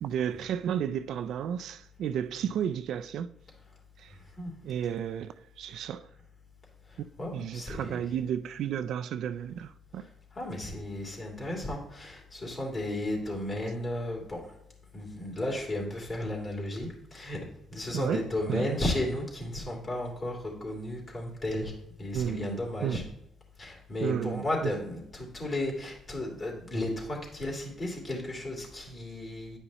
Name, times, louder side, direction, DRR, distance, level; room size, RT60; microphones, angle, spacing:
voice 1, 0.0-3.3 4.0-4.1 4.6-6.1 7.3-10.1 17.9-18.8 22.1-23.0 24.0-24.7, right 9 dB, 75° right, 0.3 m, -33 dB
voice 2, 4.1-4.5 6.8-8.0 9.9-14.5 14.9-17.5 17.7-23.1 23.6-29.6, left 1 dB, 40° left, 2.8 m, -34 dB
9.9 x 5.5 x 3.0 m
cardioid pair, 90°, 0 cm